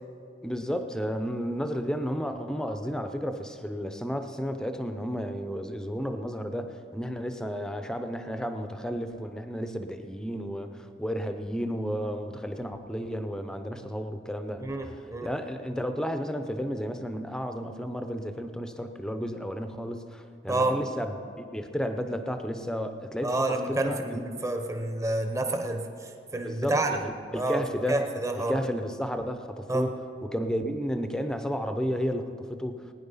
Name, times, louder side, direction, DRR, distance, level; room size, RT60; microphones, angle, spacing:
voice 1, 0.4-14.6 15.2-24.4 26.4-28.0 28.4-29.9 30.2-32.8, equal, 5° left, 7 dB, 0.7 m, -32 dB
voice 2, 14.6-15.3 20.5-20.8 23.2-25.9 26.3-27.0 27.3-27.6 27.9-28.5 29.7-29.9, right 2 dB, 15° right, 4 dB, 1.0 m, -28 dB
20.0 x 9.7 x 5.6 m, 2.5 s
head